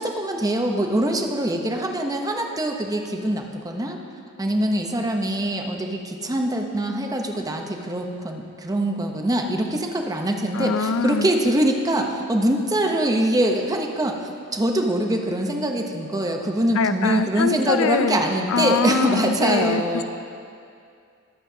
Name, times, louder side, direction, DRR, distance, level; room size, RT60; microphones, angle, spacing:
voice 1, 0.0-4.0 4.4-20.0, right 1 dB, 15° right, 3 dB, 0.8 m, -23 dB
voice 2, 10.5-11.3 16.8-18.2 18.5-20.0, left 5 dB, 70° left, 11 dB, 0.5 m, -23 dB
21.5 x 8.0 x 2.8 m, 2.4 s
head